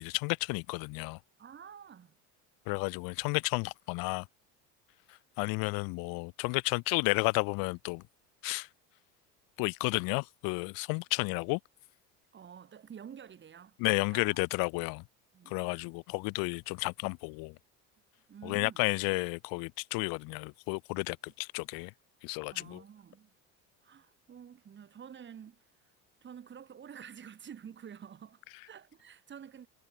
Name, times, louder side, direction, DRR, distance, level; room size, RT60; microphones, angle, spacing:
voice 1, 0.0-1.2 2.7-4.3 5.4-8.0 8.4-8.7 9.6-11.6 13.8-15.0 15.5-17.5 18.4-21.9 22.2-22.8, left 29 dB, 75° left, 0.9 m, -32 dB
voice 2, 1.4-2.2 12.3-14.5 15.3-15.6 18.3-18.9 22.5-23.3 23.8-25.6 26.2-29.7, right 8 dB, 30° right, 5.7 m, -49 dB
cardioid pair, 135°, 35 cm